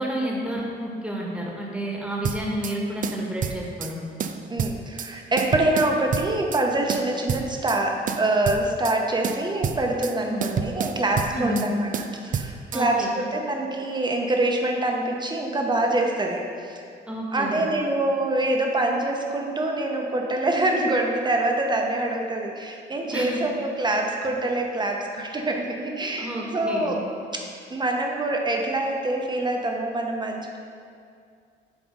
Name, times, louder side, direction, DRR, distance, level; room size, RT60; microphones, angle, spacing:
voice 1, 0.0-4.0 10.2-10.5 11.3-11.7 12.7-13.1 17.1-17.6 23.1-23.4 26.2-26.9, equal, 5° right, -2 dB, 1.4 m, -30 dB
sound 1, 2.2-2.8 3.0-3.9 4.2-5.1 5.4-6.6 6.9-7.8 8.1-9.0 9.2-10.1 10.4-11.7 11.9-12.8, right 7 dB, 45° right, 0.4 m, -29 dB
voice 2, 4.5-11.9 12.2-16.8 17.3-27.0 27.3-30.6, right 2 dB, 20° right, 1 dB, 1.0 m, -25 dB
8.1 x 3.4 x 5.2 m, 2.3 s
cardioid pair, 90°, 20 cm